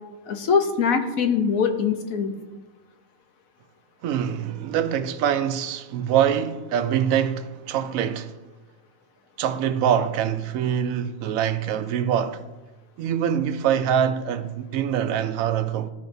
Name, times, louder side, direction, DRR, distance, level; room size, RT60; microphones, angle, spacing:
voice 1, 0.3-2.3, left 6 dB, 85° left, 1.2 m, -22 dB
voice 2, 4.0-8.3 9.4-12.4 13.0-15.9, right 9 dB, 80° right, 1.0 m, -24 dB
14.0 x 5.1 x 2.6 m
omnidirectional pair, 1.4 m